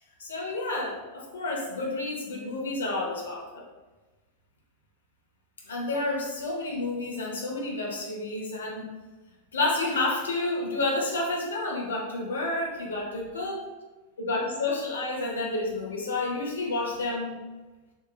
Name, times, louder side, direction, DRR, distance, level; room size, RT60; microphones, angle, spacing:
voice 1, 0.2-3.6 5.7-8.9 9.5-13.7 14.2-17.4, left 2 dB, 70° left, -2 dB, 0.7 m, -30 dB
3.7 x 2.7 x 2.2 m, 1.2 s
figure-of-eight pair, 90°, 0 cm